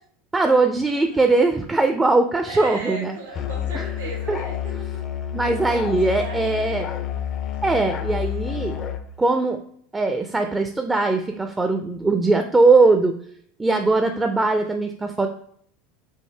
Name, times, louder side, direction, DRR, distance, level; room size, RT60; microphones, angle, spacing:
voice 1, 0.3-3.2 3.7-3.9 4.3-4.4 5.3-6.9 7.6-8.8 9.2-9.6 9.9-13.2 13.6-15.3, right 3 dB, 15° right, 6 dB, 0.5 m, -20 dB
voice 2, 0.9-1.2 2.4-5.2 5.9-6.9, right 2 dB, 85° right, 0 dB, 1.4 m, -37 dB
Musical instrument, 3.3-9.0, left 10 dB, 45° left, 0.5 m, -29 dB
4.6 x 2.6 x 3.3 m, 0.64 s
hypercardioid pair, 85°, 0 cm